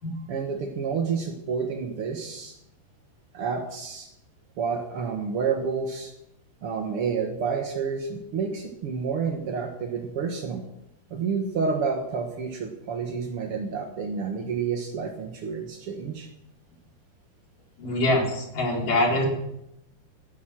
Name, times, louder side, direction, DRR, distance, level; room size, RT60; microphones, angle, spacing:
voice 1, 0.2-2.5 3.3-4.1 4.6-6.1 6.6-10.6 11.1-16.3, right 5 dB, 70° right, 3 dB, 1.3 m, -29 dB
voice 2, 17.8-19.2, left 1 dB, 50° left, -2 dB, 5.4 m, -24 dB
17.5 x 11.5 x 6.2 m, 0.83 s
omnidirectional pair, 4.9 m